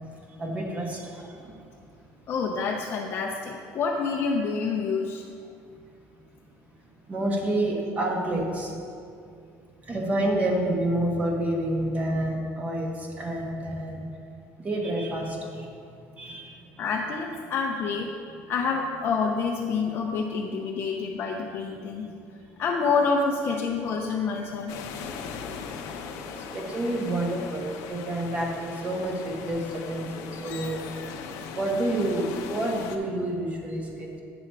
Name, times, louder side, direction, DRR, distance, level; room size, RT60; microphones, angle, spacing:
voice 1, 0.4-1.5 7.1-8.7 9.8-14.0 14.6-15.7 16.2-16.4 26.4-30.9 31.5-34.2, right 1 dB, 25° right, 0 dB, 1.2 m, -28 dB
voice 2, 2.3-5.2 16.8-18.1 18.5-22.1 22.6-24.8 30.4-30.5, left 4 dB, 40° left, -1 dB, 0.6 m, -27 dB
sound 1, 24.7-33.0, left 6 dB, 75° left, 0.7 m, -39 dB
8.5 x 6.0 x 4.6 m, 2.4 s
cardioid pair, 150°, 6 cm